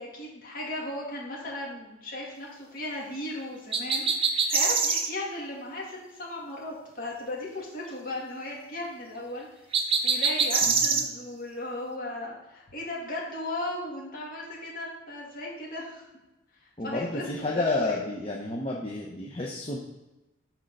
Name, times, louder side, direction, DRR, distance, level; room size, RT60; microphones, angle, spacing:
voice 1, 0.0-9.6 10.0-16.0 16.8-18.1, left 1 dB, 45° left, -3 dB, 2.3 m, -36 dB
sound 1, 3.7-5.1 9.7-11.1, right 5 dB, 25° right, 0.6 m, -24 dB
voice 2, 10.7-11.0 16.8-19.8, left 2 dB, 30° left, -1 dB, 0.7 m, -31 dB
6.3 x 4.4 x 6.5 m, 1.0 s
head